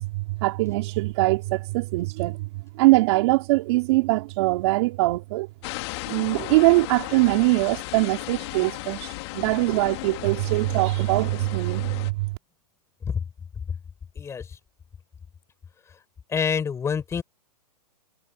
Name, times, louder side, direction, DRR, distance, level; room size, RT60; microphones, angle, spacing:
voice 1, 0.0-2.4 2.8-5.5 6.1-9.1 9.3-12.3, right 21 dB, 45° right, 3.6 m, -22 dB
sound 1, 5.6-12.1, left 22 dB, 40° left, 2.5 m, -35 dB
voice 2, 14.2-14.5 16.3-17.2, left 6 dB, 15° left, 7.1 m, -26 dB
hypercardioid pair, 145°, 21 cm